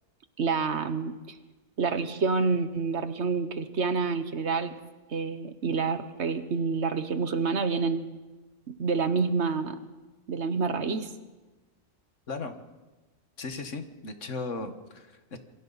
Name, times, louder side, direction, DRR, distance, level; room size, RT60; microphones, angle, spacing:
voice 1, 0.4-1.4 1.8-4.7 5.1-8.1 8.7-9.8 10.3-11.1, right 4 dB, 60° right, 10 dB, 1.4 m, -28 dB
voice 2, 13.4-15.4, left 3 dB, 65° left, 7 dB, 1.9 m, -36 dB
27.0 x 23.0 x 4.1 m, 1.2 s
omnidirectional pair, 1.4 m